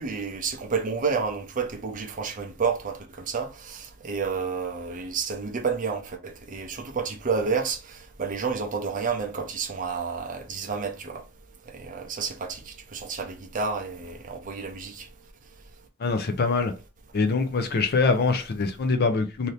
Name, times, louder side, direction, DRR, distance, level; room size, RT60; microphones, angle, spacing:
voice 1, 0.0-11.2 11.7-15.1, right 5 dB, 40° right, 0.6 m, -30 dB
voice 2, 16.0-16.7 17.1-19.5, left 4 dB, 45° left, 0.5 m, -24 dB
2.7 x 2.7 x 3.2 m
head